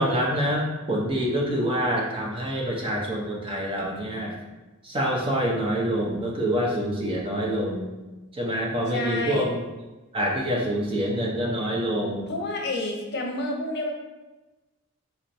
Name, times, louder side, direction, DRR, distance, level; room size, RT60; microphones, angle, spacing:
voice 1, 0.0-4.3 4.8-7.9 8.3-9.6 10.1-12.3, equal, 25° right, -3 dB, 0.8 m, -26 dB
voice 2, 8.9-9.5 12.3-13.9, left 2 dB, 55° left, 1 dB, 0.7 m, -29 dB
4.3 x 3.1 x 3.9 m, 1.1 s
head